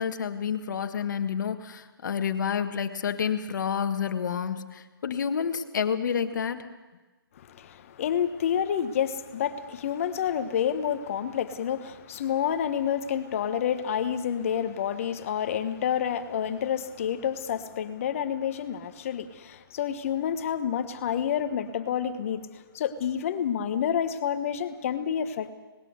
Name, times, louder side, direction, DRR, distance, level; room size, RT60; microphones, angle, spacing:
voice 1, 0.0-6.6, left 7 dB, 50° left, 1.6 m, -29 dB
voice 2, 7.4-22.5 22.7-25.5, left 8 dB, 35° left, 1.3 m, -29 dB
19.5 x 17.5 x 8.1 m
hypercardioid pair, 155°, 12 cm